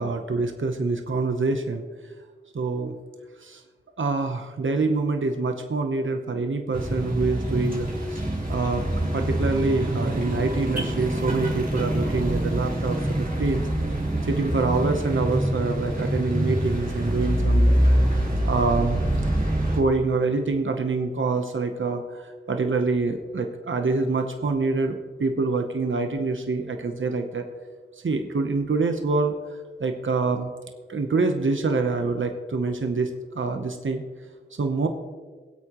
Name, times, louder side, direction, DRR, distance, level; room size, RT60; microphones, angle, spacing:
voice 1, 0.0-1.9 2.5-3.0 3.4-3.6 4.0-8.2 8.5-8.8 9.1-13.6 14.3-18.0 18.4-19.1 19.7-27.4 28.0-29.3 29.8-30.5 30.9-33.1 33.3-34.0 34.6-34.9, right 3 dB, 85° right, 5 dB, 0.9 m, -26 dB
sound 1, 6.7-19.8, right 1 dB, 45° right, 3.0 m, -25 dB
22.5 x 8.3 x 3.0 m, 1.5 s
wide cardioid pair, 60°, 20 cm